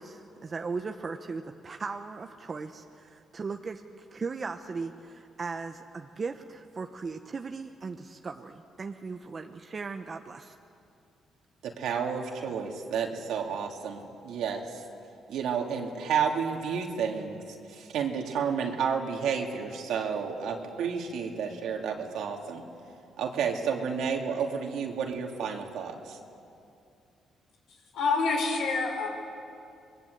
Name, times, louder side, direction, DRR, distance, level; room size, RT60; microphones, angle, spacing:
voice 1, 0.0-10.6, right 4 dB, 35° right, 5 dB, 1.0 m, -38 dB
voice 2, 11.6-14.8 15.3-22.6 23.2-26.2, right 6 dB, 80° right, 1 dB, 2.8 m, -31 dB
voice 3, 27.9-29.1, left 4 dB, 80° left, 2 dB, 5.1 m, -27 dB
26.0 x 21.5 x 8.1 m, 2.6 s
cardioid pair, 90°, 0 cm